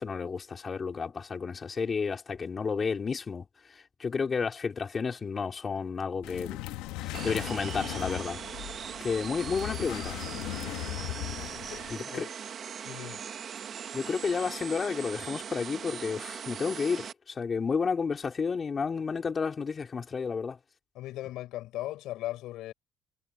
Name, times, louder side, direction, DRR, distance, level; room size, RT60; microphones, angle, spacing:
voice 1, 0.0-3.5 4.0-6.6 7.0-8.4 9.0-10.2 11.9-12.3 13.9-20.6, left 5 dB, 30° left, 4.4 m, -31 dB
sound 1, 6.2-11.9, left 17 dB, 90° left, 2.5 m, -38 dB
sound 2, 7.1-17.1, right 7 dB, 45° right, 3.3 m, -40 dB
voice 2, 12.8-13.2 20.9-22.7, left 15 dB, 75° left, 7.8 m, -38 dB
cardioid pair, 115°, 0 cm